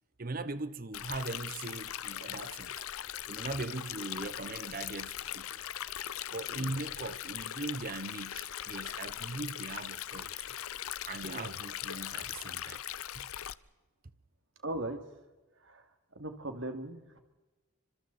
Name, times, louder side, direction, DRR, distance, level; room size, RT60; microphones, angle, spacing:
voice 1, 0.2-2.8 3.3-5.6 6.3-10.5 11.1-12.8 13.1-13.3, right 2 dB, 40° right, 0.9 m, -40 dB
Stream, 0.9-13.5, left 11 dB, 75° left, 0.6 m, -40 dB
voice 2, 11.2-11.5 14.6-15.0 15.6-15.9 16.1-17.2, right 1 dB, 60° right, 2.6 m, -39 dB
29.0 x 26.0 x 4.2 m
head